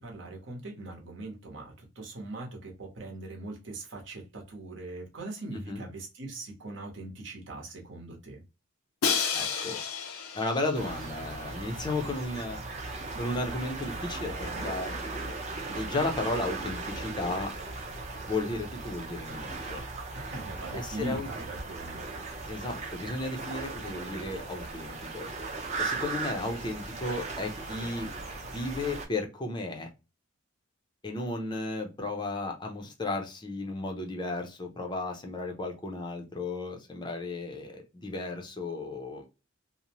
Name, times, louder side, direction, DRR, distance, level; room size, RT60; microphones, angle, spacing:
voice 1, 0.0-8.4 20.1-22.0, right 2 dB, 60° right, 0.9 m, -41 dB
voice 2, 5.5-5.9 9.3-9.8 10.3-12.6 13.2-15.0 15.7-17.5 18.2-19.8 20.7-21.4 22.5-25.3 25.8-28.1 28.4-29.9 31.0-39.3, left 2 dB, 20° left, 0.5 m, -34 dB
Crash cymbal, 9.0-11.0, left 6 dB, 85° left, 0.5 m, -31 dB
sound 1, 10.7-29.1, right 3 dB, 30° right, 0.6 m, -37 dB
2.7 x 2.0 x 2.9 m
head